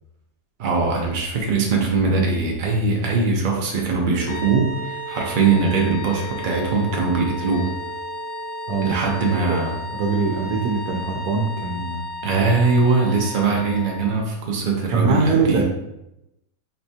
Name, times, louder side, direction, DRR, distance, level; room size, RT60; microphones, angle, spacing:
voice 1, 0.6-7.7 8.8-9.7 12.2-15.6, right 4 dB, 50° right, 0 dB, 0.6 m, -21 dB
sound 1, 3.7-9.3, right 5 dB, 65° right, 1.4 m, -38 dB
sound 2, 4.2-14.2, left 2 dB, 65° left, 0.5 m, -34 dB
voice 2, 8.7-9.0 9.4-9.6 9.9-12.1 14.9-15.6, right 4 dB, 90° right, 0 dB, 1.1 m, -22 dB
4.1 x 3.3 x 2.8 m, 0.90 s
omnidirectional pair, 1.6 m